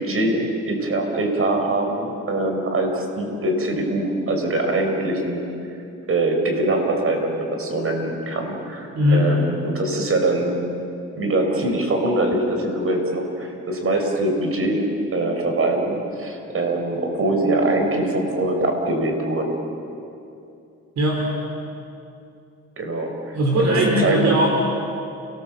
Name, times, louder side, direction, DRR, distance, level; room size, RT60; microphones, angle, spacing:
voice 1, 0.0-5.4 6.1-10.6 11.1-19.6 22.8-24.3, right 2 dB, 45° right, 3 dB, 5.1 m, -23 dB
voice 2, 8.9-9.3 21.0-21.3 23.3-24.5, equal, 60° right, 0 dB, 4.0 m, -19 dB
29.5 x 19.5 x 7.5 m, 2.7 s
cardioid pair, 90°, 30 cm